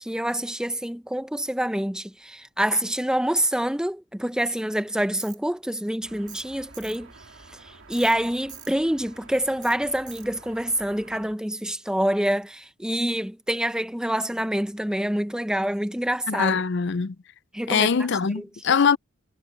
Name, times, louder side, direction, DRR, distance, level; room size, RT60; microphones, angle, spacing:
voice 1, 0.0-7.1 7.5-16.6 17.5-17.9 18.4-18.5, right 1 dB, 5° right, 0.5 m, -26 dB
Tools, 5.2-5.4 6.3-6.5 6.7-7.0 7.9-8.2 8.5-8.7 9.6-9.8 10.1-10.3, right 7 dB, 20° right, 2.1 m, -44 dB
sound 1, 6.0-11.3, right 3 dB, 65° right, 3.2 m, -50 dB
voice 2, 16.3-17.1 17.7-19.0, left 6 dB, 55° left, 0.5 m, -22 dB
head